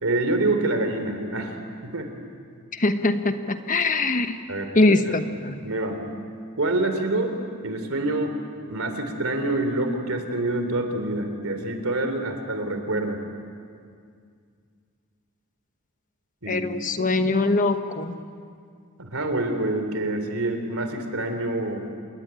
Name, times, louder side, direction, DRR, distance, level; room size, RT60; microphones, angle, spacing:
voice 1, 0.0-1.6 1.8-2.1 4.5-4.7 5.0-5.2 5.6-6.0 6.6-7.4 7.6-8.3 8.7-13.2 16.4-16.6 19.0-22.0, right 2 dB, 65° right, 6 dB, 3.4 m, -26 dB
voice 2, 2.7-4.4 4.7-5.6 16.5-18.1, left 2 dB, 35° left, 8 dB, 1.2 m, -22 dB
27.5 x 21.0 x 9.0 m, 2.2 s
head